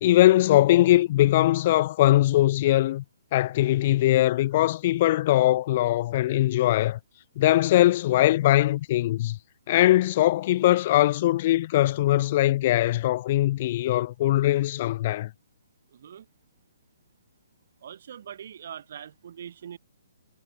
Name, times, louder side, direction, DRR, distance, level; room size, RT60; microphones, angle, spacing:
voice 1, 0.0-3.0 3.3-7.0 7.4-9.4 9.7-15.3, left 15 dB, 40° left, 0.3 m, -21 dB
voice 2, 17.8-19.8, right 9 dB, 55° right, 1.3 m, -42 dB
figure-of-eight pair, 130°, 0 cm